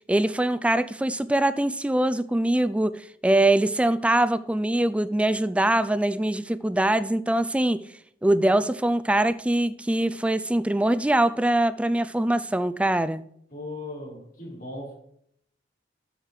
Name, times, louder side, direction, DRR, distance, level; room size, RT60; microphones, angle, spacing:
voice 1, 0.1-7.8 8.2-13.2, right 1 dB, 5° right, 0.3 m, -23 dB
voice 2, 13.5-14.9, left 2 dB, 50° left, 4.0 m, -37 dB
8.0 x 5.8 x 4.8 m
head